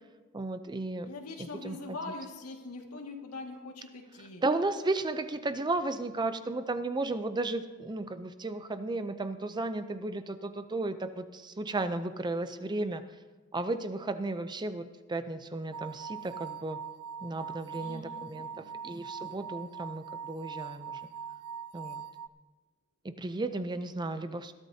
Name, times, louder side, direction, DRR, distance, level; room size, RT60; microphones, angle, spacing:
voice 1, 0.3-1.1 1.4-1.8 4.4-13.0 13.5-16.8 17.2-21.0 21.7-22.1 23.0-24.5, right 2 dB, 20° right, 10 dB, 0.5 m, -34 dB
voice 2, 1.0-4.4 17.8-18.8, left 3 dB, 75° left, 1 dB, 2.0 m, -43 dB
sound 1, 15.7-22.3, right 7 dB, 80° right, 0.4 m, -42 dB
21.0 x 12.5 x 2.8 m, 1.3 s
head